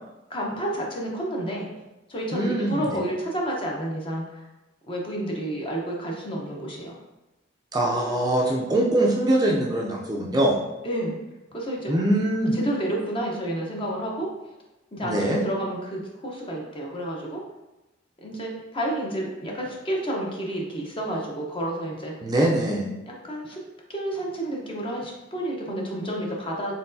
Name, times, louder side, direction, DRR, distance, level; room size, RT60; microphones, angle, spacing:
voice 1, 0.3-1.7 2.1-4.5 4.9-7.0 10.8-11.2 11.5-12.0 12.5-14.3 14.9-17.4 18.2-22.1 23.1-23.6 23.9-26.8, right 1 dB, 30° left, -2 dB, 0.9 m, -30 dB
voice 2, 2.3-2.8 7.7-10.5 11.9-12.6 15.0-15.4 22.2-22.9, right 1 dB, 20° right, -2 dB, 0.5 m, -23 dB
4.4 x 3.8 x 2.7 m, 1.0 s
head